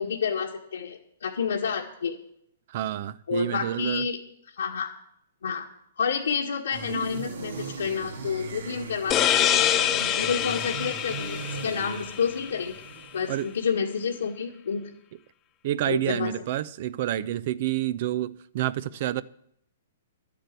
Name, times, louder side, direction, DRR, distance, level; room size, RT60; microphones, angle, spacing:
voice 1, 0.0-2.2 3.3-4.2 4.6-4.9 5.4-5.7 6.0-9.5 10.2-12.7 13.1-14.9 15.9-16.3, left 6 dB, 85° left, 1.7 m, -29 dB
voice 2, 2.7-4.1 13.3-13.5 15.6-19.2, right 13 dB, 55° right, 0.7 m, -29 dB
sound 1, 6.7-13.6, right 4 dB, 75° right, 2.4 m, -38 dB
sound 2, 9.1-12.6, left 10 dB, 25° left, 1.0 m, -25 dB
11.5 x 8.6 x 8.2 m
hypercardioid pair, 130°, 0 cm